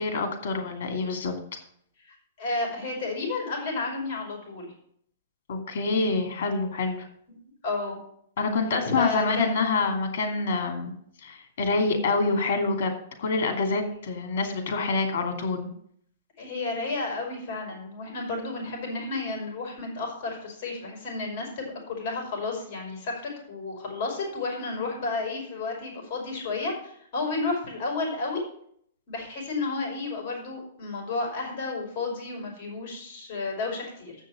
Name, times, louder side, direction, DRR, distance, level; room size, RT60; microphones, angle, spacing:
voice 1, 0.0-1.3 5.5-7.0 8.4-10.9 11.2-12.9 13.2-15.7, left 3 dB, 60° left, 5 dB, 2.7 m, -26 dB
voice 2, 2.1-4.7 7.3-7.4 7.6-8.0 8.8-9.6 16.4-28.4 29.1-34.2, left 3 dB, 40° left, 0 dB, 4.9 m, -32 dB
7.7 x 6.5 x 7.6 m, 0.65 s
hypercardioid pair, 160°, 0 cm